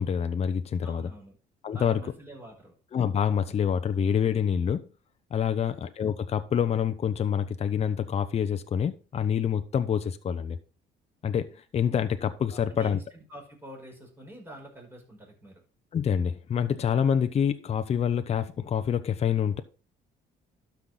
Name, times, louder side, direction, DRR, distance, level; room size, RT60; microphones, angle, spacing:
voice 1, 0.0-1.1 1.6-2.0 2.9-4.9 5.3-10.6 11.2-13.0 15.9-19.6, left 8 dB, 40° left, 0.8 m, -27 dB
voice 2, 0.8-1.4 1.7-2.7 5.5-5.7 12.5-15.6, right 1 dB, 15° right, 5.5 m, -47 dB
12.0 x 5.8 x 3.9 m
cardioid pair, 110°, 17 cm